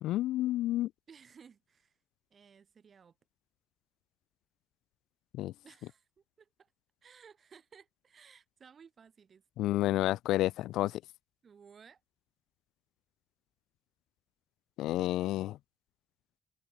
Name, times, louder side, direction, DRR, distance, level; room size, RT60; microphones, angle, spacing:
voice 1, 0.0-0.9 5.3-5.5 9.6-11.0 14.8-15.6, left 15 dB, 90° left, 0.3 m, -30 dB
voice 2, 1.1-2.0 2.3-3.1 5.6-6.1 6.4-6.7 7.0-9.4 11.4-12.0, right 6 dB, 45° right, 4.1 m, -58 dB
open air
cardioid pair, 90°, 0 cm